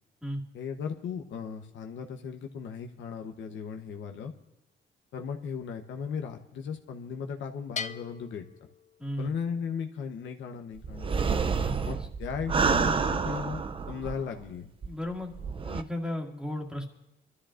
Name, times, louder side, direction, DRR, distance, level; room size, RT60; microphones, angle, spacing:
voice 1, 0.5-4.3 5.1-8.4 9.2-11.3 11.9-13.6 13.9-14.7, left 6 dB, 70° left, 4 dB, 1.0 m, -36 dB
Bell, 7.8-9.5, left 6 dB, 35° left, 0.5 m, -40 dB
voice 2, 9.0-9.3 11.6-11.8 14.8-15.3 15.6-16.8, left 1 dB, 5° right, -1 dB, 2.2 m, -34 dB
sound 1, 10.8-14.4 14.8-14.9 15.3-15.8, right 5 dB, 25° right, 0.4 m, -28 dB
25.0 x 13.0 x 2.5 m, 0.90 s
cardioid pair, 90°, 20 cm